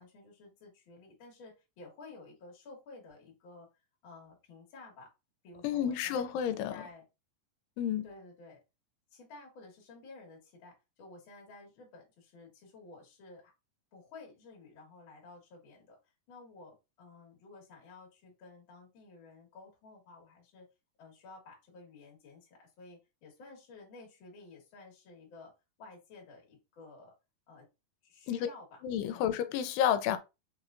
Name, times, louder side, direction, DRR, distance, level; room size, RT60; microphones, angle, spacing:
voice 1, 0.0-3.7 4.0-5.1 5.4-7.0 8.0-8.6 9.1-13.5 13.9-16.0 16.3-20.7 21.0-25.5 25.8-27.1 27.5-27.7 28.0-28.8 29.1-29.3, left 3 dB, 50° left, 1.5 m, -53 dB
voice 2, 5.6-6.8 7.8-8.1 28.3-28.5 28.8-30.2, left 9 dB, 85° left, 2.6 m, -30 dB
6.0 x 3.1 x 2.5 m
omnidirectional pair, 4.6 m